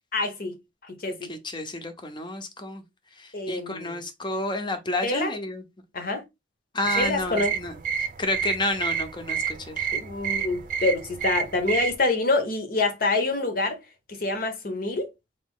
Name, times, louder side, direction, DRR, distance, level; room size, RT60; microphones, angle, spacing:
voice 1, 0.1-0.5 0.8-1.3 3.3-4.0 5.0-5.3 5.9-6.2 7.0-7.6 9.9-13.8 14.1-15.1, left 2 dB, 55° left, 1.0 m, -26 dB
voice 2, 1.3-2.8 3.5-5.6 6.7-7.7 8.2-9.9, left 2 dB, 25° left, 0.8 m, -30 dB
sound 1, 6.8-12.0, right 8 dB, 50° right, 0.6 m, -30 dB
4.0 x 2.8 x 3.7 m
head